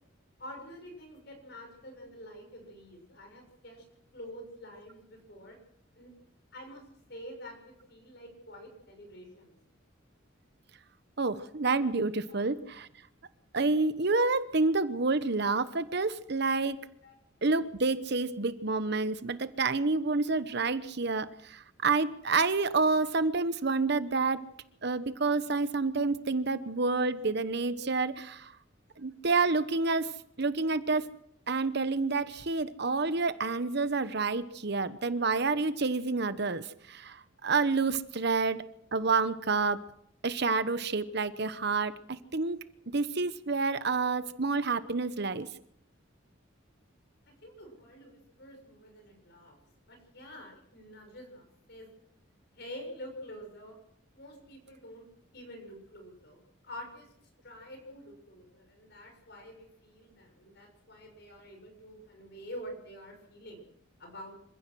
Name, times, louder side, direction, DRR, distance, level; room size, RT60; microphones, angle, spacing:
voice 1, 0.4-3.8 4.1-5.6 5.9-6.1 6.5-6.8 7.1-9.6 16.1-16.2 17.0-17.2 47.3-49.6 49.9-51.9 52.5-53.8 54.1-55.1 55.3-56.4 56.6-57.1 57.4-63.7 64.0-64.4, equal, 60° left, 4 dB, 6.9 m, -47 dB
voice 2, 11.2-12.9 13.5-16.8 17.4-24.4 24.8-28.5 29.0-30.1 30.4-31.1 31.5-38.6 38.9-39.8 40.2-42.6 42.9-45.5, right 3 dB, 55° right, 13 dB, 1.0 m, -29 dB
26.0 x 16.0 x 6.3 m, 0.71 s
head